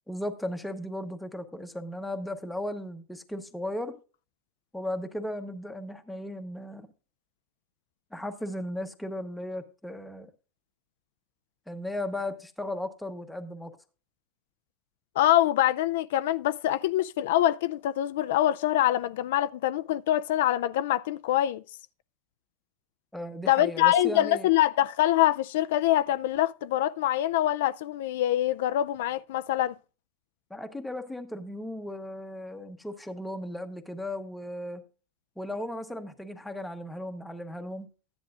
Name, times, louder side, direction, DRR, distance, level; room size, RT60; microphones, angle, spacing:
voice 1, 0.1-3.9 4.7-6.9 8.1-10.3 11.7-13.7 23.1-24.5 30.5-34.8 35.4-37.9, left 1 dB, 5° left, 1.0 m, -36 dB
voice 2, 15.2-21.6 23.5-29.7, left 13 dB, 75° left, 0.4 m, -25 dB
14.5 x 10.0 x 2.5 m
supercardioid pair, 165°, 0 cm